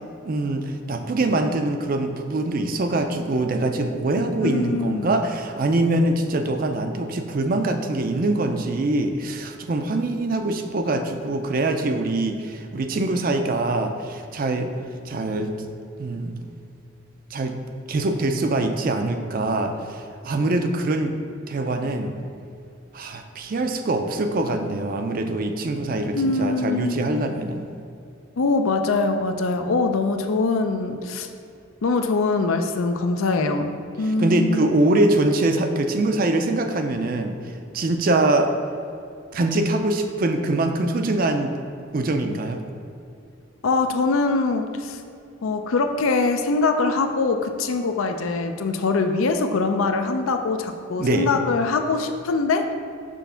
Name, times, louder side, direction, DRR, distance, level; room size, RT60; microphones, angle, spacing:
voice 1, 0.2-14.7 15.0-15.5 16.0-16.3 17.3-17.6 17.9-21.1 21.5-22.1 22.9-27.7 34.0-37.4 37.7-38.5 39.3-41.5 41.9-42.6 51.0-51.3, right 2 dB, 45° right, 6 dB, 0.4 m, -23 dB
voice 2, 4.4-5.1 26.1-27.3 28.4-31.3 31.8-34.7 43.6-45.0 45.4-52.7, left 3 dB, 85° left, 6 dB, 0.5 m, -23 dB
6.2 x 3.4 x 5.6 m, 2.5 s
head